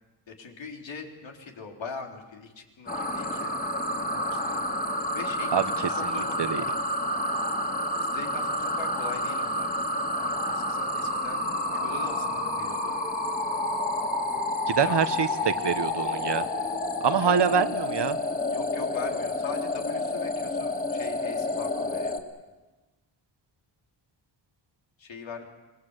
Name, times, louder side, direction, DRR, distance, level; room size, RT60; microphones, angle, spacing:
voice 1, 0.3-3.5 3.8-4.6 5.1-6.8 8.0-9.7 10.2-13.0 14.8-15.0 15.7-15.8 17.2-17.6 18.5-22.2 25.0-25.5, left 4 dB, 85° left, 2 dB, 3.8 m, -41 dB
sound 1, 2.9-22.2, left 1 dB, 20° left, 2.6 m, -29 dB
voice 2, 6.0-6.6 14.7-16.4 17.0-18.2, right 7 dB, 65° right, 11 dB, 1.3 m, -25 dB
25.0 x 21.0 x 8.2 m, 1.2 s
cardioid pair, 80°, 44 cm